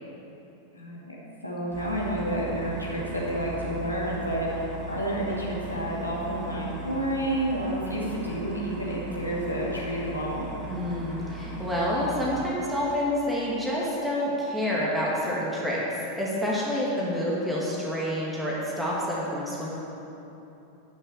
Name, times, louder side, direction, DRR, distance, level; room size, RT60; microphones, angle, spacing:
voice 1, 0.7-1.2 1.4-10.5 16.9-17.4, equal, 85° left, -5 dB, 2.6 m, -30 dB
sound 1, 1.7-12.5, right 3 dB, 25° right, 2.6 m, -39 dB
voice 2, 10.7-15.8 16.1-19.7, equal, 5° right, -6 dB, 2.3 m, -28 dB
11.5 x 6.6 x 7.3 m, 3.0 s
figure-of-eight pair, 90°, 0 cm